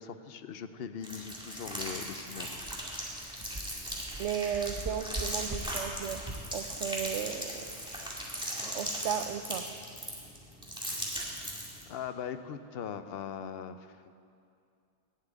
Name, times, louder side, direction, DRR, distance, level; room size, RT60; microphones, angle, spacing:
voice 1, 0.0-2.6 11.9-14.0, left 7 dB, 65° left, 11 dB, 0.8 m, -40 dB
sound 1, 1.0-11.9, equal, 5° right, 2.0 m, -38 dB
sound 2, 2.4-8.3, right 1 dB, 25° right, 0.8 m, -43 dB
voice 2, 4.2-6.2 6.5-7.8 8.7-9.6, right 8 dB, 85° right, 11 dB, 1.0 m, -35 dB
11.5 x 7.3 x 9.1 m, 2.4 s
omnidirectional pair, 1.2 m